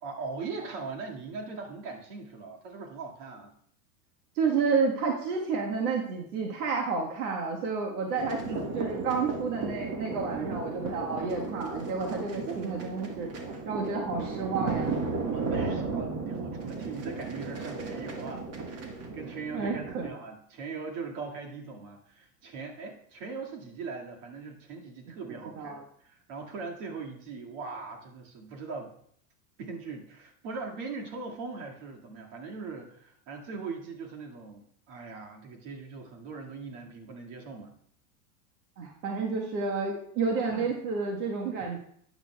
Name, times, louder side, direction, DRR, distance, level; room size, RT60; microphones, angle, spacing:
voice 1, 0.0-3.5 8.4-8.8 12.3-12.6 15.3-18.8 19.1-28.9 29.6-37.7 40.5-40.7 41.6-41.7, right 4 dB, 55° right, 1 dB, 2.1 m, -40 dB
voice 2, 4.3-8.4 8.7-13.3 13.7-14.9 19.5-20.1 25.5-25.8 38.8-41.8, right 4 dB, 75° right, 0 dB, 1.6 m, -30 dB
sound 1, 8.2-20.1, right 4 dB, 35° right, 1.4 m, -35 dB
12.0 x 8.9 x 2.3 m, 0.66 s
supercardioid pair, 115°, 45 cm